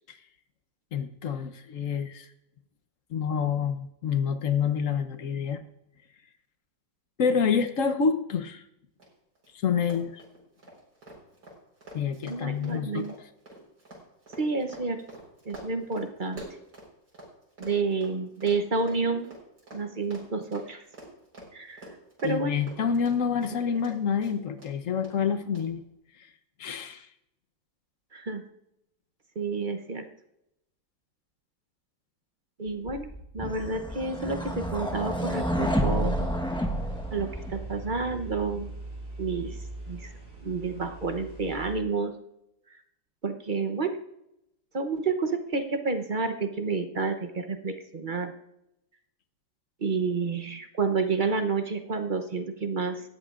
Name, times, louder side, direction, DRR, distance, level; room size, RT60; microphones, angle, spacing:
voice 1, 0.9-2.3 3.1-5.6 7.2-8.6 9.5-10.2 11.9-13.1 22.2-25.8 26.2-26.3 26.6-27.1, left 6 dB, 55° left, 9 dB, 1.1 m, -27 dB
Run, 9.0-9.1 9.4-9.5 9.8-17.3 17.6-23.9 24.2-24.7 25.0-25.1 25.5-25.6, right 1 dB, 60° right, 5.2 m, -46 dB
voice 2, 12.3-13.1 14.4-15.0 15.5-16.5 17.6-19.3 19.7-20.8 21.5-21.9 22.2-22.5 28.1-28.4 29.4-30.1 32.6-33.1 33.3-36.3 37.1-38.7 39.2-39.6 39.9-40.1 40.4-42.1 43.2-44.0 44.7-48.3 49.8-53.0, right 4 dB, 40° right, 7 dB, 0.7 m, -29 dB
sound 1, 32.9-37.8, equal, 5° left, 0.9 m, -30 dB
sound 2, 34.6-41.8, right 3 dB, 10° right, 4.7 m, -41 dB
18.5 x 14.5 x 2.5 m, 0.84 s
omnidirectional pair, 1.9 m